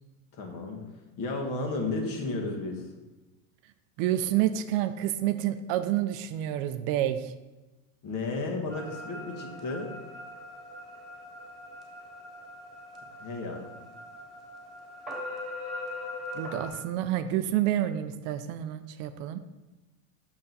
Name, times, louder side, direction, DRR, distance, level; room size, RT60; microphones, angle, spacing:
voice 1, 0.3-0.9 1.2-2.9 8.0-9.9 13.2-13.7, left 3 dB, 50° left, 2 dB, 1.7 m, -33 dB
voice 2, 4.0-7.3 16.3-19.4, right 12 dB, 55° right, 10 dB, 0.5 m, -28 dB
sound 1, 8.7-16.7, left 2 dB, ahead, 2.2 m, -41 dB
6.5 x 5.6 x 4.0 m, 1.1 s
supercardioid pair, 115°, 42 cm